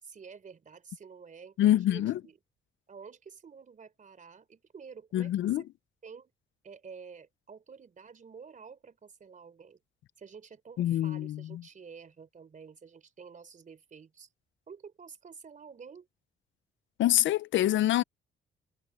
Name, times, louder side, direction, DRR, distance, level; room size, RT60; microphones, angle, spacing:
voice 1, 0.0-2.4 2.9-5.6 6.0-6.3 6.6-9.8 10.2-14.3 14.7-16.1, right 6 dB, 40° right, 3.7 m, -50 dB
voice 2, 1.6-2.2 5.1-5.6 10.8-11.6 17.0-18.0, left 13 dB, 75° left, 0.6 m, -26 dB
cardioid pair, 90°, 20 cm